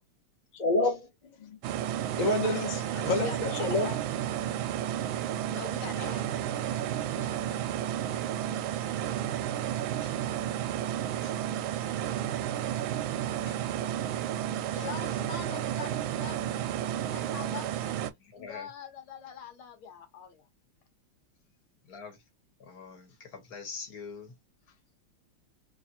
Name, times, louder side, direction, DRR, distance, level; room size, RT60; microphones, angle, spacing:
voice 1, 0.5-1.6 2.2-3.9 5.0-5.1, left 2 dB, 30° left, 0.8 m, -29 dB
sound 1, 1.6-18.1, right 11 dB, 75° right, 1.3 m, -32 dB
voice 2, 2.2-3.4 3.8-4.0 4.4-4.6 5.5-7.8 8.1-8.9 13.6-13.9 14.7-18.0 18.3-20.4, left 8 dB, 75° left, 1.8 m, -45 dB
voice 3, 18.3-18.7 21.9-22.2 22.6-24.3, left 5 dB, 50° left, 1.5 m, -44 dB
3.3 x 3.2 x 2.7 m
omnidirectional pair, 2.4 m